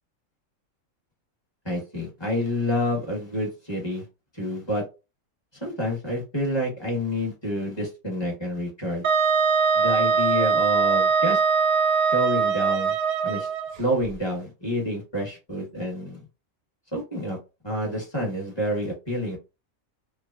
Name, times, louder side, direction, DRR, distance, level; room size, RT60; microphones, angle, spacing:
voice 1, 1.6-4.0 4.3-4.8 5.6-9.0 9.7-11.4 12.1-12.9 13.2-13.5 13.8-16.2 16.9-17.4 17.6-19.4, left 1 dB, 20° left, 1.1 m, -28 dB
Wind instrument woodwind instrument, 9.0-13.7, right 5 dB, 65° right, 0.7 m, -22 dB
3.2 x 2.0 x 2.4 m
omnidirectional pair, 1.4 m